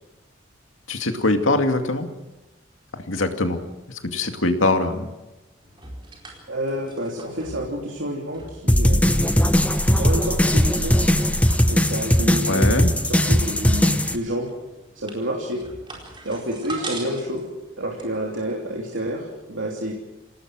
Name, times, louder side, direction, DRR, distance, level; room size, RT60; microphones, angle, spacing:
voice 1, 0.9-2.1 2.9-3.6 3.9-5.1 12.2-12.9, left 2 dB, 85° left, 5 dB, 2.4 m, -23 dB
sound 1, 5.6-18.9, right 2 dB, 25° right, 4.5 m, -42 dB
voice 2, 6.5-9.3 9.9-10.9 11.7-14.5 14.9-15.6 16.2-17.4 17.8-19.9, equal, 75° right, -2 dB, 3.2 m, -29 dB
sound 2, 8.7-14.2, equal, 5° left, 1.0 m, -19 dB
27.5 x 18.5 x 6.4 m, 1.0 s
head